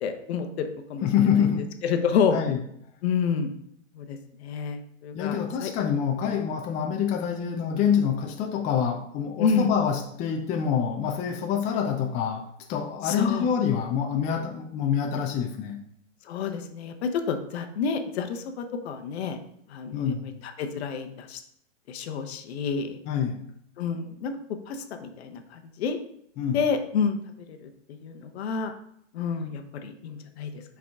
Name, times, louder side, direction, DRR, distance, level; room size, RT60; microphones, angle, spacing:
voice 1, 0.0-1.1 1.4-1.5 1.8-2.4 3.0-3.5 3.9-5.7 9.4-9.7 13.0-13.5 16.3-19.4 19.7-20.1 20.6-21.4 21.9-23.0 23.8-24.3 24.7-26.0 26.5-27.2 27.5-28.7 29.1-30.5, left 6 dB, 55° left, 6 dB, 0.9 m, -29 dB
voice 2, 1.0-1.7 2.3-2.6 5.1-15.8 19.9-20.3 23.1-23.4 26.4-26.6, left 8 dB, 20° left, 2 dB, 0.5 m, -26 dB
6.1 x 4.7 x 3.5 m, 0.71 s
hypercardioid pair, 115°, 38 cm